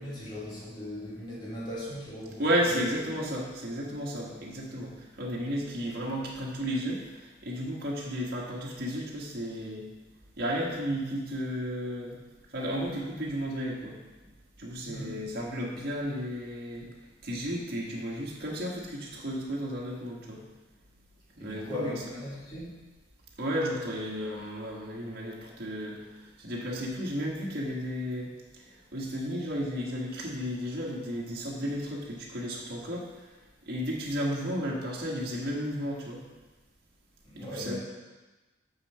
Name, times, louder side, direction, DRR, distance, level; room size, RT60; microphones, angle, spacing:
voice 1, 0.0-3.3 14.8-15.2 21.4-22.7 37.2-37.8, left 1 dB, 25° left, -8 dB, 2.8 m, -39 dB
voice 2, 2.4-9.9 10.4-12.2 12.5-14.0 14.6-16.9 17.2-20.4 21.4-22.0 23.4-26.0 26.4-28.3 28.9-33.0 33.7-36.2 37.3-37.8, equal, 55° right, -3 dB, 1.6 m, -33 dB
6.9 x 5.6 x 5.5 m, 1.2 s
head